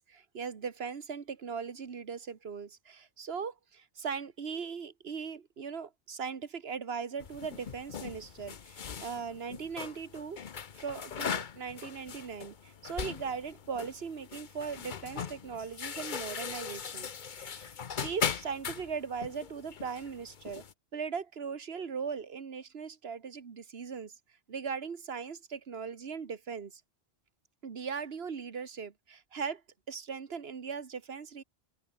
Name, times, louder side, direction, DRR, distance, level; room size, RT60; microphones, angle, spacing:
voice 1, 0.0-10.4 10.8-20.6 20.9-24.1 24.5-26.8 27.6-29.6 29.9-31.4, right 6 dB, 70° right, 1.6 m, -39 dB
sound 1, 7.2-20.7, left 7 dB, 50° left, 1.0 m, -40 dB
omnidirectional pair, 1.1 m